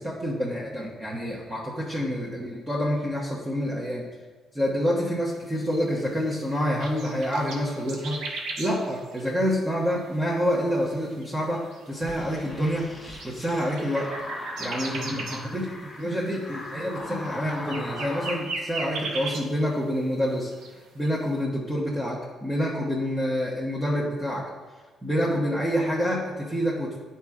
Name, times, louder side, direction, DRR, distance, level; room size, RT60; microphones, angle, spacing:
voice 1, 0.0-4.0 4.5-8.2 8.6-12.9 13.2-14.1 14.6-20.5 20.9-24.5 25.0-27.0, equal, 15° right, -5 dB, 1.2 m, -27 dB
sound 1, 5.3-20.0 20.3-21.1, right 3 dB, 85° right, 0.9 m, -38 dB
sound 2, 12.0-18.5, left 2 dB, 30° left, 1.4 m, -39 dB
8.8 x 4.3 x 3.7 m, 1.3 s
cardioid pair, 90°, 0 cm